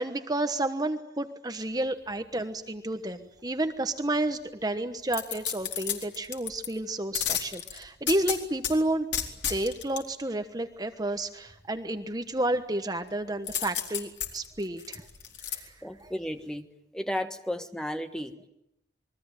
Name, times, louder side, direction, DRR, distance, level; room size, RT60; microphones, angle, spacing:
voice 1, 0.0-9.1 9.5-15.1 15.5-15.7 16.0-16.1, right 1 dB, 20° right, 8 dB, 1.2 m, -31 dB
sound 1, 5.1-6.7 7.1-8.7 9.1-10.0 13.5-15.6 16.0-16.1, left 9 dB, 80° left, 4.3 m, -32 dB
voice 2, 15.8-16.7 16.9-18.5, equal, 5° left, 7 dB, 1.5 m, -34 dB
28.0 x 22.5 x 9.1 m, 0.84 s
head